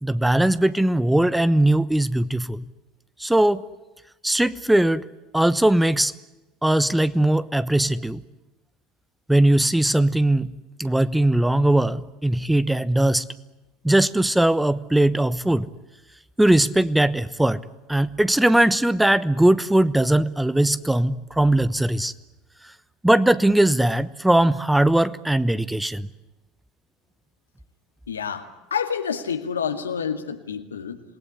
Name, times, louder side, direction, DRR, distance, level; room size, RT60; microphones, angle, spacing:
voice 1, 0.0-2.6 3.2-3.6 4.2-5.1 5.3-6.1 6.6-8.2 9.3-10.5 10.8-13.3 13.8-15.7 16.4-17.6 17.9-22.1 23.0-26.1, right 1 dB, 5° right, 17 dB, 1.0 m, -20 dB
voice 2, 28.1-31.0, left 7 dB, 85° left, 8 dB, 2.0 m, -28 dB
27.5 x 19.5 x 9.8 m, 1.0 s
figure-of-eight pair, 70°, 0 cm